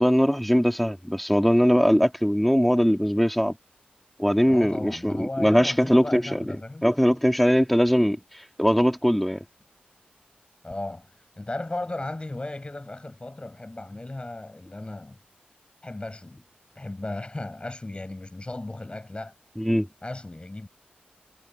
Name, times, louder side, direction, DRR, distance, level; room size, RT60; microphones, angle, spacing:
voice 1, 0.0-3.6 4.2-6.6 6.8-8.2 8.6-9.4 19.6-19.9, equal, 5° left, 2.7 m, -21 dB
voice 2, 4.5-6.9 10.6-15.2 15.8-16.4 16.8-19.3 20.0-20.7, left 2 dB, 30° left, 5.7 m, -36 dB
cardioid pair, 45°, 3 cm